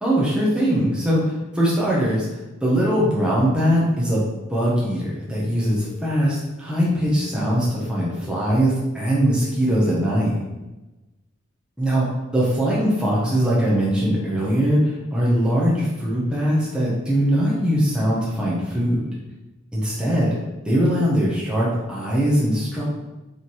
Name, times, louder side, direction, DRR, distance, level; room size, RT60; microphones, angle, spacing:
voice 1, 0.0-2.3 2.6-10.4 11.8-12.1 12.3-19.1 19.7-20.3 20.6-22.8, equal, 5° right, -7 dB, 1.3 m, -21 dB
sound 1, 5.3-6.3 7.2-8.2 9.2-10.2, left 7 dB, 75° left, 1.7 m, -43 dB
5.5 x 3.8 x 4.8 m, 1.1 s
head